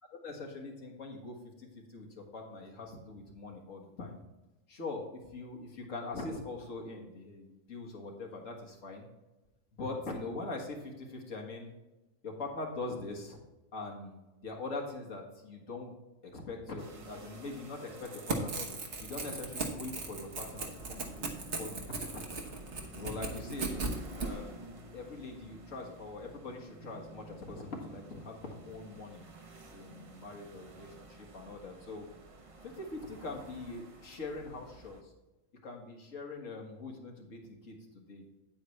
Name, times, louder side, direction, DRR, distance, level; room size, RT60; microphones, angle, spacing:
voice 1, 0.2-4.2 4.7-9.1 9.8-11.7 12.2-13.4 13.7-15.9 16.2-18.7 19.0-22.2 22.9-23.8 24.2-24.6 24.9-29.3 29.7-32.1 32.6-35.1 35.6-38.3, left 3 dB, 85° left, 1 dB, 2.0 m, -42 dB
sound 1, 16.8-35.0, right 2 dB, 35° right, 0.7 m, -52 dB
Crackle / Tearing, 17.9-24.3, right 3 dB, 65° right, 1.5 m, -37 dB
9.3 x 8.5 x 3.2 m, 1.1 s
omnidirectional pair, 1.3 m